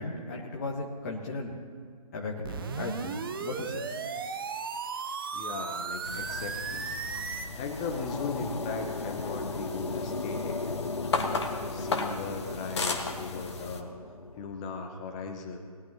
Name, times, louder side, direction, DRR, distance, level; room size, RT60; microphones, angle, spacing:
voice 1, 0.0-1.7 2.1-3.8, left 2 dB, 25° left, -2 dB, 1.2 m, -36 dB
sound 1, 2.4-7.5, right 5 dB, 35° right, 0.7 m, -35 dB
voice 2, 5.3-7.0 7.5-10.6 11.7-13.9 14.4-15.6, left 4 dB, 10° left, 4 dB, 0.5 m, -38 dB
sound 2, 6.0-13.8, left 4 dB, 45° left, 1.4 m, -36 dB
sound 3, 7.3-14.5, left 3 dB, 80° left, 0.8 m, -37 dB
20.0 x 12.0 x 2.8 m, 2.1 s
figure-of-eight pair, 150°, 19 cm